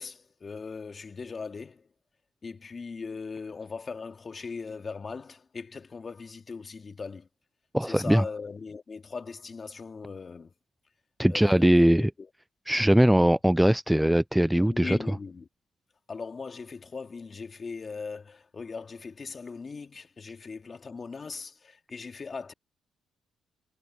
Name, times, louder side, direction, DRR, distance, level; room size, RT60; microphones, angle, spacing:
voice 1, 0.0-1.9 2.4-7.3 7.8-10.5 11.3-12.3 14.5-15.5 16.1-22.5, left 4 dB, 35° left, 2.5 m, -39 dB
voice 2, 7.7-8.2 11.2-12.1 12.7-15.0, right 1 dB, 5° right, 0.5 m, -21 dB
cardioid pair, 90°, 0 cm